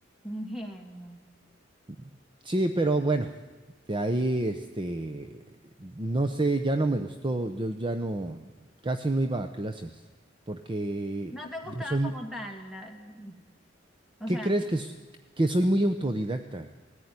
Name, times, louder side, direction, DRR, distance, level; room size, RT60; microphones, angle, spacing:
voice 1, 0.2-1.2 11.3-13.4 14.2-14.7, equal, ahead, 3 dB, 2.5 m, -39 dB
voice 2, 2.4-3.3 3.9-5.4 5.8-8.5 8.8-10.0 10.5-11.3 11.8-12.1 14.3-14.9 15.4-16.7, right 1 dB, 25° right, 7 dB, 0.8 m, -28 dB
19.5 x 14.5 x 9.6 m, 1.3 s
head